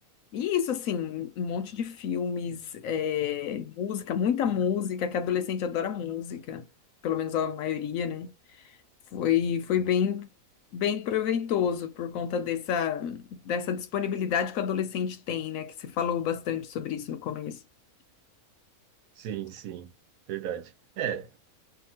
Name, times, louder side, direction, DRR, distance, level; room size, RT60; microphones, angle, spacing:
voice 1, 0.3-6.7 7.0-8.3 9.1-10.3 10.7-17.6, left 8 dB, 70° left, 0.9 m, -29 dB
voice 2, 19.2-19.9 20.3-21.4, right 10 dB, 75° right, 1.0 m, -35 dB
2.8 x 2.4 x 2.8 m
omnidirectional pair, 1.6 m